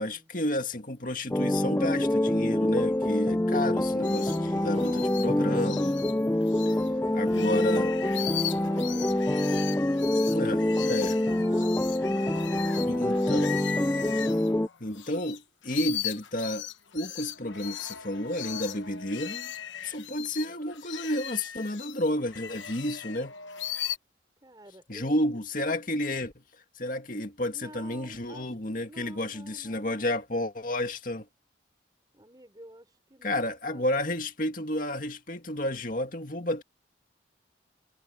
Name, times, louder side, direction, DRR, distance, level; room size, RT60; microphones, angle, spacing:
voice 1, 0.0-6.0 7.1-7.9 10.3-11.2 12.9-13.6 14.8-16.7 16.9-19.5 19.8-23.3 24.9-26.3 26.8-31.3 33.2-36.6, left 1 dB, 45° left, 2.2 m, -31 dB
sound 1, 1.3-14.7, left 1 dB, 10° left, 0.4 m, -26 dB
voice 2, 3.6-5.5 6.6-8.0 8.4-9.4 9.9-11.0 11.3-12.6 24.4-25.4 27.5-30.2 32.1-34.1, right 1 dB, 20° right, 5.1 m, -50 dB
sound 2, 4.0-6.9 7.2-15.4 15.6-24.0, left 10 dB, 80° left, 1.1 m, -38 dB
head